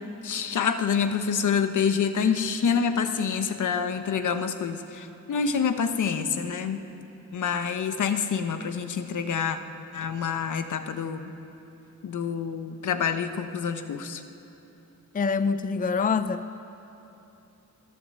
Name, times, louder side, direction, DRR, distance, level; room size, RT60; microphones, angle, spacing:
voice 1, 0.2-6.8 7.3-9.6 9.9-11.3 12.0-14.2, left 6 dB, 75° left, 8 dB, 1.1 m, -27 dB
voice 2, 15.1-16.5, left 5 dB, 25° left, 12 dB, 0.5 m, -25 dB
28.5 x 12.0 x 7.6 m, 2.9 s
wide cardioid pair, 120°, 31 cm